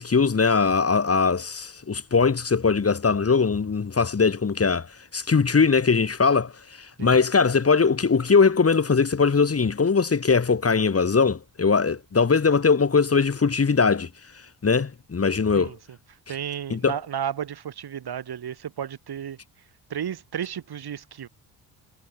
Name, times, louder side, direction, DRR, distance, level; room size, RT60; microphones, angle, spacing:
voice 1, 0.0-4.9 5.1-6.5 7.0-14.1 14.6-15.7 16.7-17.0, left 5 dB, 30° left, 1.9 m, -21 dB
voice 2, 16.3-19.4 19.9-21.3, right 9 dB, 55° right, 2.4 m, -33 dB
supercardioid pair, 60°, 46 cm